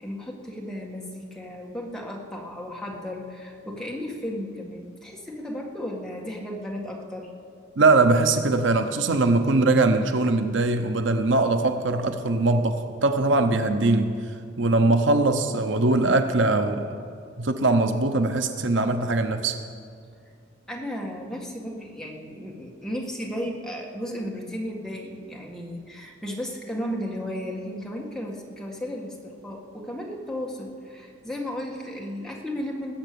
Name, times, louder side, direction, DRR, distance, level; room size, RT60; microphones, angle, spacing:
voice 1, 0.0-7.3 20.7-32.9, equal, 5° left, -2 dB, 1.8 m, -34 dB
voice 2, 7.8-14.2 14.6-16.9 17.4-19.6, right 2 dB, 70° right, 7 dB, 0.8 m, -21 dB
20.0 x 7.9 x 6.9 m, 2.2 s
head